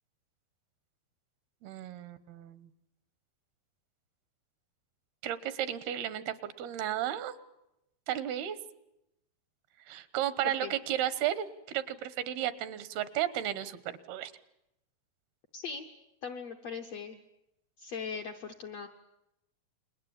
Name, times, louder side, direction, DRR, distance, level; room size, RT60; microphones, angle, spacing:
voice 1, 1.6-2.7 5.2-7.3 8.1-8.6 9.9-14.3, right 11 dB, 85° right, 14 dB, 3.1 m, -34 dB
voice 2, 15.5-15.9 16.2-17.2 17.8-18.9, left 5 dB, 70° left, 4 dB, 1.6 m, -39 dB
28.5 x 21.5 x 8.8 m, 0.86 s
omnidirectional pair, 4.4 m